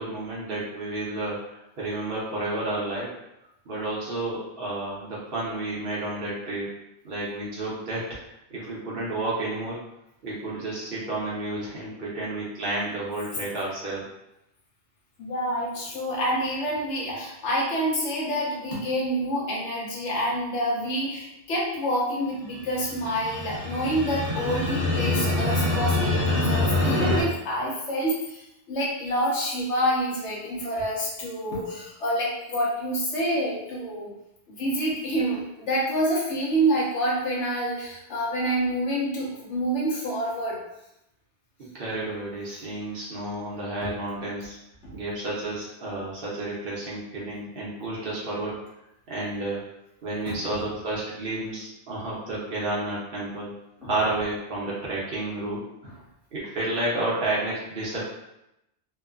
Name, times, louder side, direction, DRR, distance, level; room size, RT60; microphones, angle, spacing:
voice 1, 0.0-3.1 3.6-6.8 7.0-9.8 10.2-14.1 41.6-44.6 44.9-48.6 49.1-49.6 50.0-55.6 56.3-58.1, right 2 dB, 55° right, -6 dB, 0.9 m, -31 dB
voice 2, 15.2-34.1 34.5-40.6 44.8-44.9 50.5-50.6 53.8-53.9, equal, 75° left, -5 dB, 1.1 m, -27 dB
sound 1, 22.7-27.2, left 2 dB, 20° right, 0.4 m, -25 dB
3.0 x 2.1 x 2.4 m, 0.85 s
omnidirectional pair, 1.2 m